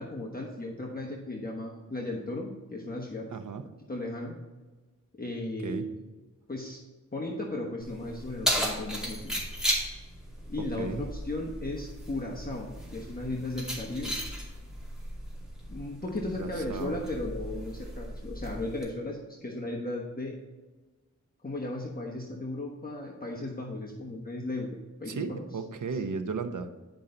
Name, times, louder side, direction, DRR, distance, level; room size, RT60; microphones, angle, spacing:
voice 1, 0.0-3.3 3.9-4.3 5.2-6.0 6.5-6.8 7.1-9.4 10.5-14.1 15.7-20.4 21.4-24.7 25.0-25.4, left 2 dB, 30° left, -2 dB, 1.2 m, -36 dB
voice 2, 3.3-3.7 5.6-5.9 10.6-11.1 16.4-17.0 25.1-26.7, right 4 dB, 70° right, 9 dB, 0.8 m, -35 dB
Keys jangling, 7.8-18.8, equal, ahead, 2.3 m, -36 dB
10.0 x 5.6 x 3.9 m, 1.3 s
wide cardioid pair, 85°, 32 cm